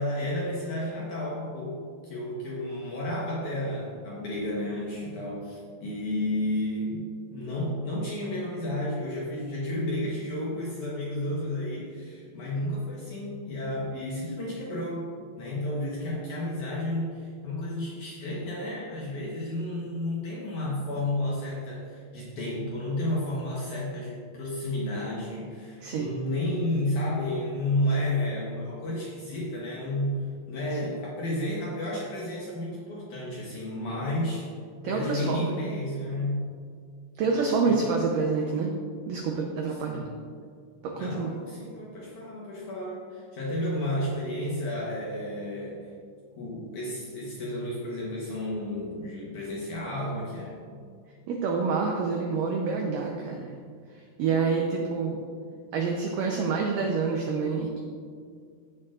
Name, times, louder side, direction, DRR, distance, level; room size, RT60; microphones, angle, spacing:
voice 1, 0.0-1.8 2.1-15.1 15.4-34.5 34.8-36.4 37.6-37.8 39.7-40.2 40.9-45.9 46.4-50.6, left 1 dB, 70° left, -5 dB, 1.9 m, -32 dB
voice 2, 25.8-26.1 30.8-30.9 34.8-35.7 37.2-38.7 39.1-40.1 40.8-41.4 51.3-53.4 54.2-55.2 55.7-57.8, right 4 dB, 90° right, 1 dB, 1.9 m, -27 dB
16.0 x 7.3 x 2.4 m, 2.1 s
omnidirectional pair, 4.9 m